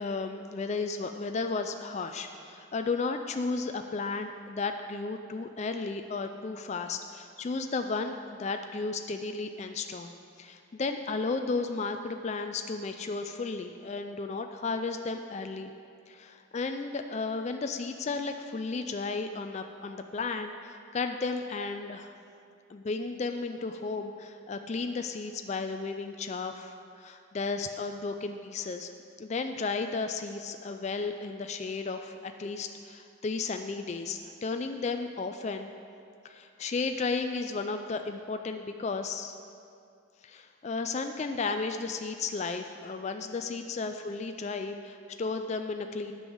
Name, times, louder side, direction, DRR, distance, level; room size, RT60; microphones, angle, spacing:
voice 1, 0.0-10.1 10.4-15.7 16.1-22.1 22.7-28.9 29.2-35.7 36.2-39.3 40.2-46.1, left 4 dB, 30° left, 6 dB, 0.3 m, -34 dB
9.1 x 5.4 x 7.8 m, 2.4 s
head